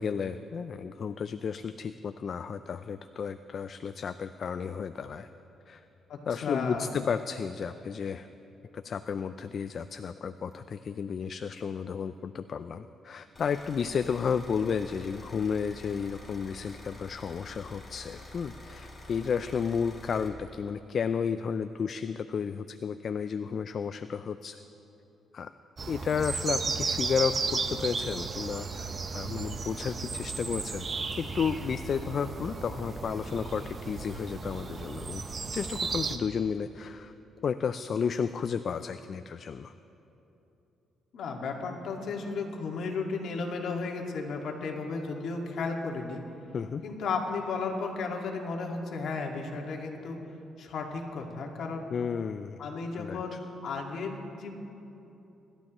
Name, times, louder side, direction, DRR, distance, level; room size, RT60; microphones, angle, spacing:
voice 1, 0.0-5.3 5.7-5.8 6.3-8.3 8.7-24.6 25.3-25.5 25.9-30.9 31.2-35.2 35.5-37.1 37.4-39.7 46.5-46.8 51.9-52.6 53.0-53.4, left 6 dB, 50° left, 10 dB, 0.4 m, -32 dB
voice 2, 6.1-6.9 41.1-46.2 46.8-50.2 50.6-51.9 52.6-54.5, left 4 dB, 70° left, 0 dB, 1.9 m, -34 dB
sound 1, 13.4-20.3, left 2 dB, 20° left, 3.0 m, -47 dB
sound 2, 25.8-36.2, right 4 dB, 40° right, 1.0 m, -34 dB
26.5 x 12.0 x 3.0 m, 3.0 s
cardioid pair, 90°, 0 cm